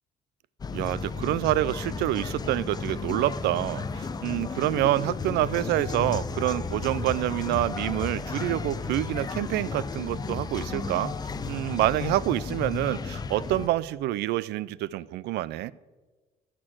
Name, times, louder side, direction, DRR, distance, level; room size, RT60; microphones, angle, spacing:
sound 1, 0.6-13.7, left 4 dB, 25° left, 0.5 m, -33 dB
voice 1, 0.7-11.1 11.5-15.7, right 15 dB, 80° right, 0.4 m, -27 dB
13.0 x 4.5 x 7.5 m
cardioid pair, 110°, 17 cm